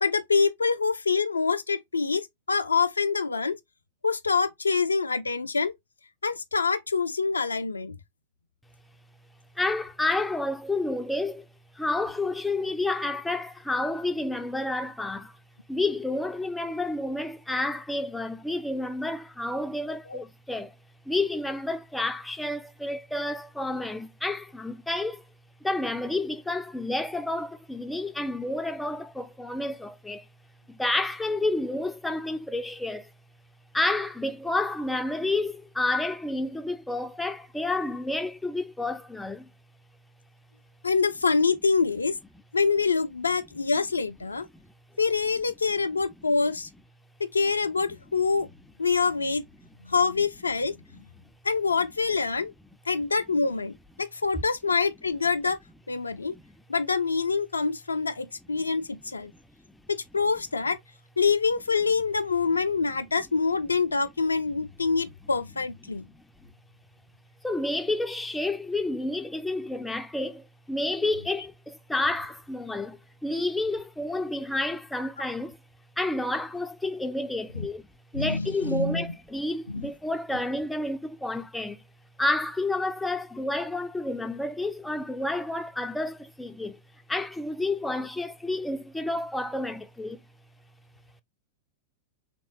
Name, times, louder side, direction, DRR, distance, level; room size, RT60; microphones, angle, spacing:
voice 1, 0.0-3.6 4.0-5.7 6.2-8.0 20.1-20.2 40.8-42.2 42.5-44.5 45.0-46.7 47.2-48.5 48.8-49.4 49.8-50.7 51.4-52.5 52.9-55.6 55.9-56.3 56.7-59.3 59.9-60.8 61.2-66.1 77.5-77.7 78.1-79.1 79.7-79.9 80.3-80.4, left 4 dB, 80° left, 0.3 m, -26 dB
voice 2, 9.6-11.5 11.8-15.4 15.7-20.7 21.1-25.2 25.6-30.3 30.7-33.1 33.7-39.5 44.5-44.7 56.3-56.4 59.7-59.8 66.1-66.2 67.4-75.6 76.0-77.8 78.1-81.8 82.2-86.8 87.1-90.2, left 2 dB, 5° left, 0.3 m, -30 dB
3.4 x 2.9 x 2.6 m
figure-of-eight pair, 95°, 0 cm